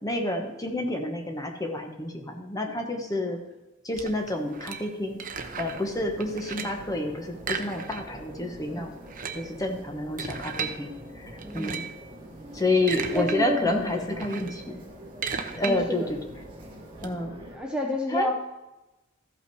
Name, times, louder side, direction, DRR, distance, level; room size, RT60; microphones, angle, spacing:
voice 1, 0.0-3.4 3.8-5.2 5.6-8.9 9.3-11.8 12.5-14.8 15.5-16.2 17.0-17.3 18.1-18.3, left 2 dB, 15° left, 3 dB, 1.1 m, -29 dB
sound 1, 3.9-5.9 6.2-6.9 7.4-8.3 8.5-8.6 9.0-10.8 11.4-12.0 12.6-13.4 13.7-17.1, right 6 dB, 40° right, 0.8 m, -35 dB
Medical center waiting room, 5.4-17.6, equal, 25° right, 1.8 m, -45 dB
voice 2, 6.4-6.7 8.6-9.1 11.4-11.9 12.8-14.3 14.7-14.8 15.5-16.1 17.5-18.5, equal, 5° right, 0 dB, 0.8 m, -32 dB
14.0 x 5.7 x 4.7 m, 1.0 s
head